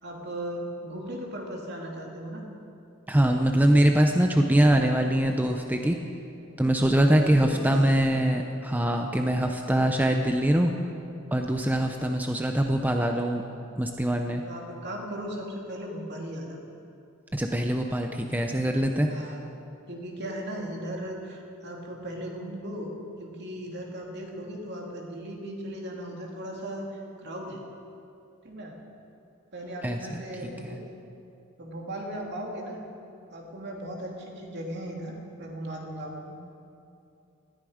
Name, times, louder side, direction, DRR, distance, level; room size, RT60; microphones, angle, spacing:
voice 1, 0.0-2.5 7.1-7.9 14.5-16.6 19.1-19.4 19.9-22.9 23.2-27.6 28.4-28.8 29.5-30.8 31.6-32.8 33.3-36.4, right 1 dB, 55° right, 0 dB, 2.6 m, -37 dB
voice 2, 3.1-6.0 6.6-10.7 11.3-13.4 13.8-14.4 17.3-19.2 29.8-30.8, right 1 dB, 10° right, 4 dB, 0.6 m, -23 dB
19.5 x 14.0 x 5.0 m, 2.7 s
head